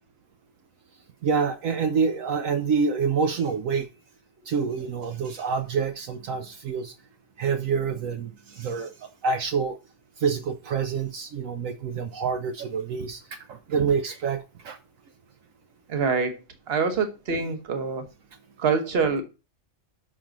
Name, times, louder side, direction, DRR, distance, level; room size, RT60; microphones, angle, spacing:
voice 1, 1.2-3.9 4.5-6.9 7.4-9.8 10.2-14.8, right 5 dB, 75° right, 1.1 m, -27 dB
voice 2, 15.9-16.4 16.7-18.0 18.6-19.2, right 5 dB, 50° right, 1.2 m, -25 dB
5.9 x 4.9 x 5.1 m
omnidirectional pair, 1.4 m